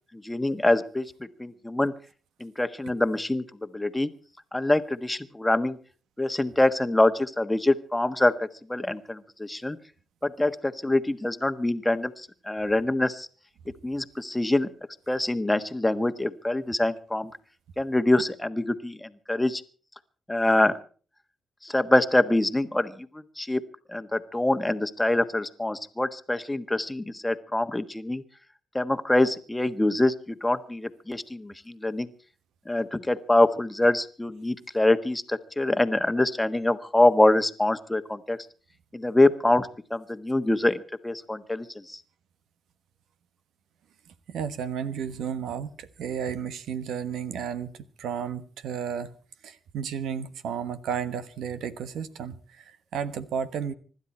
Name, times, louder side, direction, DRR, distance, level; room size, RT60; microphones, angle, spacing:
voice 1, 0.2-1.0 1.4-1.9 2.4-3.4 3.7-4.1 4.5-5.8 6.2-9.8 10.2-12.1 12.5-13.3 13.8-14.7 15.1-17.3 17.8-19.6 20.3-20.8 21.6-23.1 23.4-23.6 23.9-28.2 28.7-30.1 30.4-32.1 32.7-38.4 38.9-42.0, left 1 dB, 10° left, 10 dB, 1.4 m, -24 dB
voice 2, 44.3-49.1 49.4-53.7, right 7 dB, 85° right, 12 dB, 1.3 m, -33 dB
25.5 x 12.0 x 4.3 m, 0.40 s
cardioid pair, 85°, 0 cm